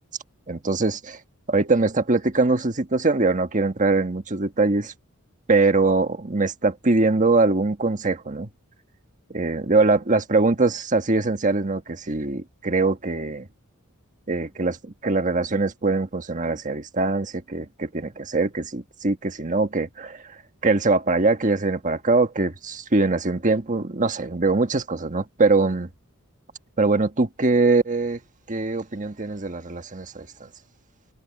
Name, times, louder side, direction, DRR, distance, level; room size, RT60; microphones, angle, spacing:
voice 1, 0.5-1.2 1.5-4.9 5.5-8.5 9.3-13.5 14.3-25.9 26.8-28.2 28.5-30.5, right 3 dB, 35° right, 1.4 m, -22 dB
head